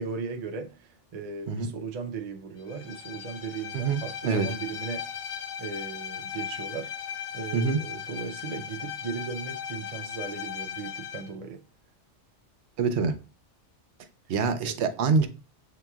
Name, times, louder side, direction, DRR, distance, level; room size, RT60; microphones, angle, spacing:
voice 1, 0.0-5.1 5.6-11.6 14.6-14.8, right 5 dB, 45° right, 0.5 m, -37 dB
Bowed string instrument, 2.7-11.3, left 8 dB, 70° left, 0.9 m, -37 dB
voice 2, 3.7-4.5 7.5-7.8 12.8-13.1 14.3-15.3, right 5 dB, 70° right, 0.9 m, -25 dB
6.6 x 3.0 x 2.3 m
omnidirectional pair, 1.2 m